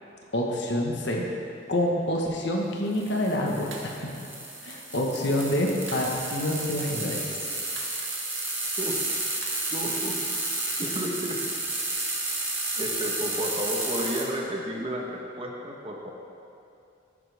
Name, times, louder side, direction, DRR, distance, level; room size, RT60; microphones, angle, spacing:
voice 1, 0.3-1.2 1.7-4.1 4.6-7.3, left 1 dB, 60° left, -1 dB, 1.3 m, -27 dB
sound 1, 2.9-14.2, right 2 dB, 10° right, 1.5 m, -31 dB
sound 2, 3.7-4.0 5.9-6.2 7.7-8.1 9.4-9.5, right 4 dB, 75° right, 1.7 m, -42 dB
voice 2, 9.7-10.2 10.8-11.4 12.8-16.1, equal, 30° right, 0 dB, 1.2 m, -32 dB
14.0 x 10.5 x 3.5 m, 2.6 s
head